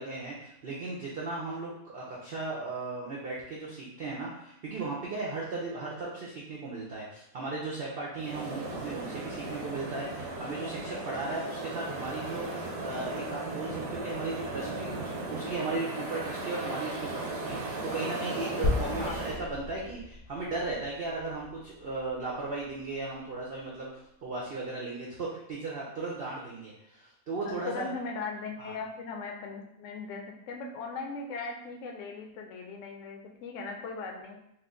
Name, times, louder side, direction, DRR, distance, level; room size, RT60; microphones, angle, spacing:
voice 1, 0.0-27.9 28.6-28.8, right 3 dB, 70° right, -4 dB, 0.5 m, -36 dB
sound 1, 8.2-19.3, right 2 dB, 85° right, 1.3 m, -36 dB
sound 2, 18.6-23.0, left 3 dB, 40° left, 1.0 m, -36 dB
voice 2, 18.8-19.2 27.4-34.4, left 4 dB, 65° left, 2 dB, 0.8 m, -39 dB
3.1 x 2.4 x 3.6 m, 0.79 s
omnidirectional pair, 1.7 m